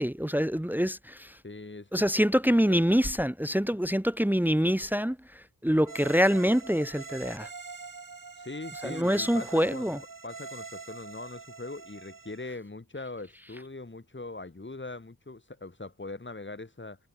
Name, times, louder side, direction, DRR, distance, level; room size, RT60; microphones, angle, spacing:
voice 1, 0.0-1.4 1.9-7.5 8.8-10.0, equal, 5° right, 1.3 m, -25 dB
voice 2, 1.4-2.0 2.7-2.9 8.4-9.9 10.2-17.0, left 2 dB, 30° left, 4.5 m, -41 dB
sound 1, 5.8-12.5, right 4 dB, 60° right, 6.8 m, -44 dB
cardioid pair, 50°, 37 cm